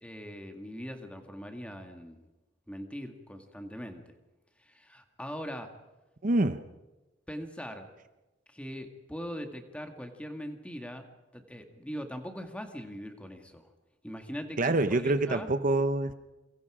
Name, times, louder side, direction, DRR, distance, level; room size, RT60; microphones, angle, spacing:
voice 1, 0.0-2.2 2.7-4.1 4.6-5.7 7.3-7.9 8.5-11.0 11.3-13.7 14.0-15.5, equal, 5° left, 5 dB, 2.1 m, -41 dB
voice 2, 6.2-6.6 14.6-16.1, right 2 dB, 45° right, 10 dB, 0.9 m, -26 dB
29.0 x 24.0 x 5.0 m, 1.1 s
head